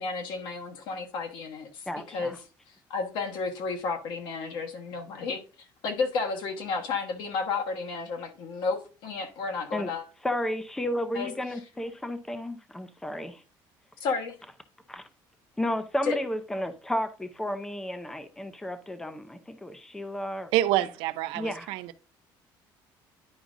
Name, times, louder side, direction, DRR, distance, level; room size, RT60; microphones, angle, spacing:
voice 1, 0.0-2.3 2.9-10.0 11.1-11.3 14.0-14.3 16.0-16.1, left 4 dB, 65° left, 1.3 m, -32 dB
voice 2, 1.9-2.4 9.7-9.9 10.2-13.4 14.9-15.1 15.6-20.5 21.3-21.7, left 1 dB, 5° left, 0.5 m, -32 dB
voice 3, 20.5-22.0, right 14 dB, 85° right, 0.5 m, -27 dB
10.5 x 4.9 x 2.5 m
cardioid pair, 165°, 9 cm